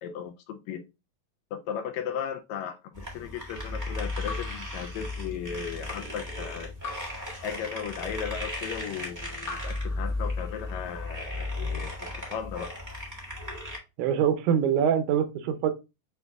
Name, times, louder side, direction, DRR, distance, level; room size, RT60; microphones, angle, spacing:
voice 1, 0.0-0.8 1.5-6.7 7.4-12.7, left 8 dB, 80° left, 1.7 m, -36 dB
sound 1, 2.9-13.8, left 2 dB, 25° right, 0.4 m, -35 dB
Raindrop / Drip, 4.2-5.6 6.8-8.2 9.4-10.8, left 4 dB, 50° left, 1.0 m, -43 dB
voice 2, 14.0-15.7, right 8 dB, 85° right, 2.1 m, -24 dB
7.9 x 2.7 x 2.2 m
omnidirectional pair, 3.5 m